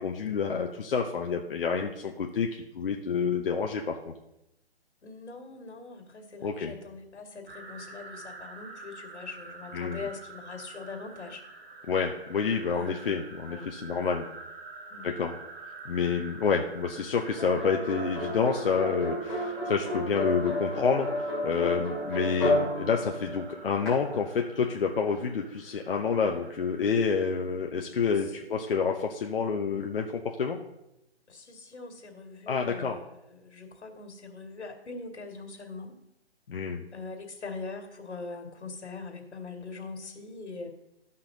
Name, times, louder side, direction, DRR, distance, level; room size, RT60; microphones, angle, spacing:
voice 1, 0.0-4.1 6.4-6.7 9.7-10.0 11.9-14.2 15.0-15.4 15.8-30.6 32.5-33.0 36.5-36.8, left 5 dB, 55° left, 2 dB, 0.8 m, -28 dB
voice 2, 5.0-11.4 12.7-13.7 14.0-14.2 14.9-15.1 16.4-16.6 28.4-28.6 31.3-36.0 36.9-40.7, left 4 dB, 85° left, 4 dB, 2.4 m, -42 dB
sound 1, 7.5-26.9, right 3 dB, 60° right, 2.0 m, -47 dB
sound 2, 17.4-23.9, left 1 dB, ahead, 2.6 m, -31 dB
14.0 x 5.6 x 3.9 m, 0.86 s
hypercardioid pair, 165°, 33 cm